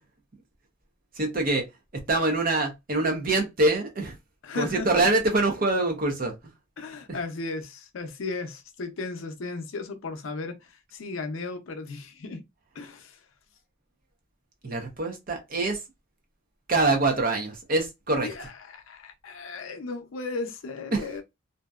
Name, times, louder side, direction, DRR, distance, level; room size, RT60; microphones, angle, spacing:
voice 1, 1.2-1.7 1.9-4.1 4.5-6.3 7.1-7.2 14.6-15.8 16.7-18.3 20.9-21.1, right 2 dB, 40° right, 0.6 m, -25 dB
voice 2, 4.4-5.1 6.8-12.5 12.7-13.3 18.2-21.2, left 3 dB, 70° left, 0.5 m, -35 dB
2.6 x 2.1 x 2.3 m
head